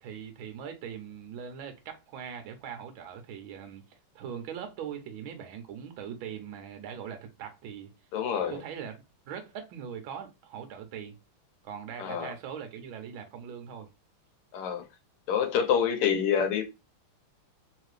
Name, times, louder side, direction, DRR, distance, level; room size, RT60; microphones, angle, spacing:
voice 1, 0.0-7.9 8.5-9.0 9.3-11.1 11.6-13.9, right 8 dB, 70° right, 1.5 m, -41 dB
voice 2, 8.1-8.6 12.0-12.3 14.5-14.9 15.3-16.6, left 8 dB, 85° left, 1.8 m, -27 dB
3.9 x 2.9 x 3.2 m
omnidirectional pair, 2.4 m